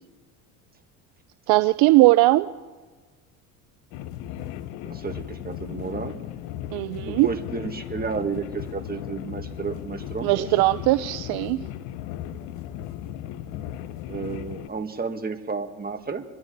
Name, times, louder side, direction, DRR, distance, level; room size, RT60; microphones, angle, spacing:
voice 1, 1.5-2.5 6.7-7.3 10.2-11.6, right 19 dB, 65° right, 14 dB, 0.6 m, -19 dB
sound 1, 3.9-14.7, left 11 dB, 75° left, 0.8 m, -36 dB
voice 2, 4.8-6.2 7.0-10.5 14.1-16.2, right 5 dB, 20° right, 5 dB, 1.9 m, -32 dB
25.5 x 10.5 x 4.0 m, 1.4 s
supercardioid pair, 80°, 41 cm